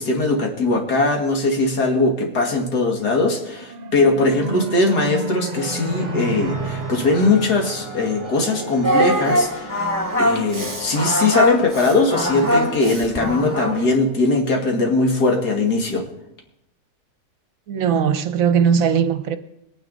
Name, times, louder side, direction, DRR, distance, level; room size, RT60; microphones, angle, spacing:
voice 1, 0.0-9.8 10.2-16.0, left 3 dB, 80° left, 2.4 m, -20 dB
sound 1, 3.4-8.9, right 2 dB, 45° right, 0.5 m, -30 dB
sound 2, 5.5-12.9, equal, 20° left, 1.4 m, -37 dB
Singing, 8.8-13.9, equal, 15° right, 1.5 m, -22 dB
voice 2, 17.7-19.4, right 7 dB, 65° right, 1.1 m, -19 dB
21.0 x 9.3 x 3.9 m
omnidirectional pair, 1.7 m